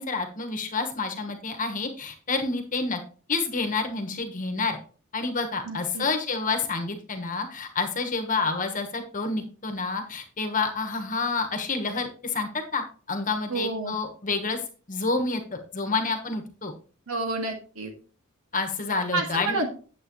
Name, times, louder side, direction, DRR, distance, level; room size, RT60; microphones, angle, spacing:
voice 1, 0.0-3.0 3.3-4.8 5.1-14.6 14.9-16.7 18.5-19.6, left 4 dB, 35° left, 5 dB, 1.2 m, -29 dB
voice 2, 5.7-6.1 13.5-14.0 17.1-17.9 19.1-19.7, right 3 dB, 70° right, 3 dB, 2.0 m, -29 dB
9.4 x 7.8 x 3.1 m, 0.39 s
head